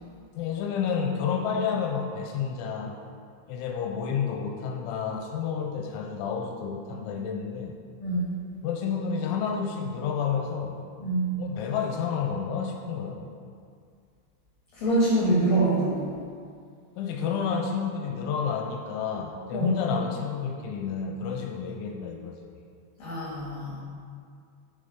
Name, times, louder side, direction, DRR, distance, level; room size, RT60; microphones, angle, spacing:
voice 1, 0.3-3.0 3.5-7.7 8.6-10.8 11.4-13.2 17.0-22.4, left 6 dB, 90° left, 2 dB, 3.0 m, -30 dB
voice 2, 8.0-8.3 11.0-11.3 14.8-16.1 19.5-19.7 23.0-23.8, right 2 dB, 60° left, -8 dB, 2.9 m, -25 dB
7.6 x 7.2 x 5.2 m, 2.2 s
omnidirectional pair, 5.4 m